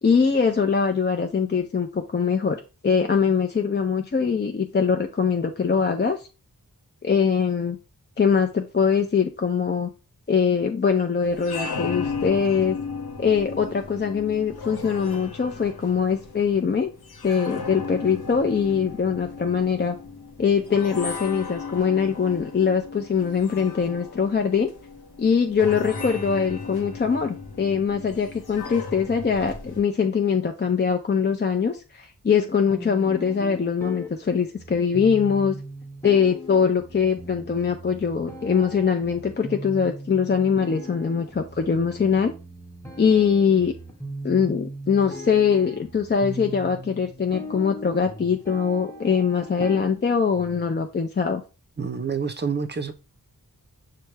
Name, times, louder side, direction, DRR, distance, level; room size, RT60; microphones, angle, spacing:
voice 1, 0.0-6.2 7.0-7.8 8.2-9.9 10.3-12.8 13.2-16.9 17.2-20.0 20.4-24.7 25.2-35.6 36.0-42.3 43.0-43.7 44.2-51.4, left 6 dB, 30° left, 4 dB, 0.4 m, -22 dB
sound 1, 11.2-29.8, left 4 dB, 80° left, 0.8 m, -36 dB
sound 2, 32.7-50.7, equal, 5° left, 1.0 m, -39 dB
voice 2, 51.8-52.9, right 5 dB, 30° right, 10 dB, 0.5 m, -27 dB
5.8 x 2.2 x 3.2 m, 0.31 s
cardioid pair, 45°, 37 cm